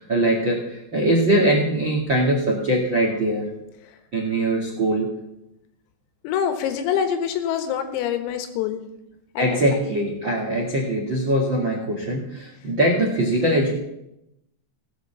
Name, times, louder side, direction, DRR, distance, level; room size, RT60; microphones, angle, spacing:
voice 1, 0.0-3.5 4.1-5.1 9.4-13.7, right 1 dB, 50° right, 0 dB, 1.4 m, -22 dB
voice 2, 6.2-8.8 9.4-9.5, left 8 dB, 90° left, 8 dB, 4.1 m, -25 dB
17.5 x 8.2 x 6.9 m, 0.84 s
omnidirectional pair, 5.9 m